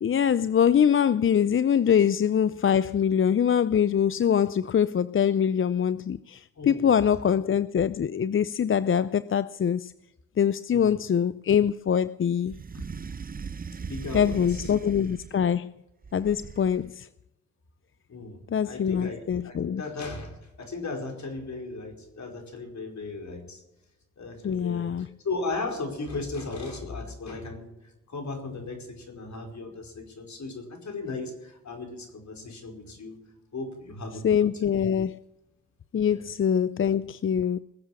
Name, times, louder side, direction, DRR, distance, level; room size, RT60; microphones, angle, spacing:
voice 1, 0.0-9.9 10.4-12.6 14.1-15.7 16.1-17.1 18.5-19.8 24.4-25.1 34.2-35.2 35.9-37.6, left 8 dB, 40° left, 0.5 m, -24 dB
voice 2, 6.6-6.9 10.7-11.0 13.9-14.7 18.1-18.4 18.6-23.6 24.2-27.7 28.1-33.2 33.5-34.3 36.0-36.2, left 3 dB, 60° left, 4.9 m, -36 dB
sound 1, 12.5-15.5 16.0-16.9, right 5 dB, 25° right, 0.6 m, -39 dB
20.5 x 8.0 x 7.3 m
supercardioid pair, 45°, 32 cm